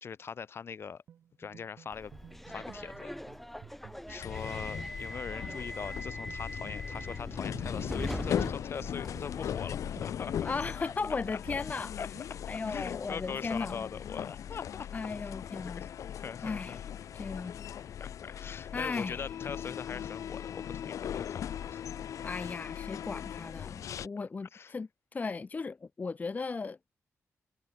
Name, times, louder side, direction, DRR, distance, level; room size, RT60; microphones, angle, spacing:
voice 1, 0.0-1.0 1.4-2.1 2.5-3.1 4.1-10.3 12.0-12.1 12.7-14.9 15.2-15.3 15.7-16.8 18.0-21.8 24.0-24.1 24.5-24.7, left 6 dB, 50° left, 1.2 m, -42 dB
sound 1, 1.1-12.3, right 9 dB, 85° right, 3.4 m, -55 dB
Subway metro underground, 1.9-9.5, equal, 5° left, 2.1 m, -41 dB
sound 2, 4.2-24.1, left 9 dB, 85° left, 1.6 m, -39 dB
voice 2, 10.4-11.9 12.5-13.9 14.9-15.8 16.4-16.8 17.1-17.6 18.7-19.3 22.2-26.8, left 4 dB, 30° left, 0.7 m, -36 dB
wide cardioid pair, 135°, 5 cm